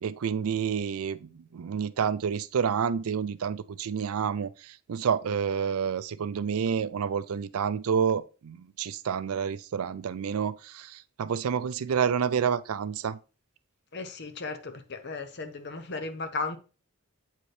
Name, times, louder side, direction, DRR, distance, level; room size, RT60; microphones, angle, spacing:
voice 1, 0.0-13.2, right 7 dB, 80° right, 0.4 m, -29 dB
voice 2, 13.9-16.6, left 3 dB, 50° left, 0.7 m, -35 dB
8.1 x 4.4 x 3.2 m
head